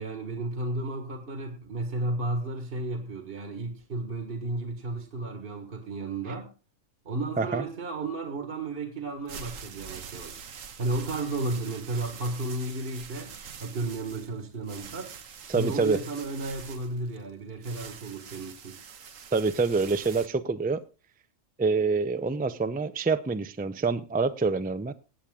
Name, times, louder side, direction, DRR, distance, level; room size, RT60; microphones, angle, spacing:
voice 1, 0.0-6.5 7.1-13.3 13.6-15.2 15.5-18.8, right 2 dB, 50° right, 1.8 m, -33 dB
sound 1, 9.1-20.3, right 7 dB, 90° right, 1.5 m, -45 dB
voice 2, 15.5-16.0 19.3-20.8 21.6-24.9, right 4 dB, 10° right, 0.4 m, -26 dB
18.0 x 8.7 x 3.7 m
omnidirectional pair, 1.3 m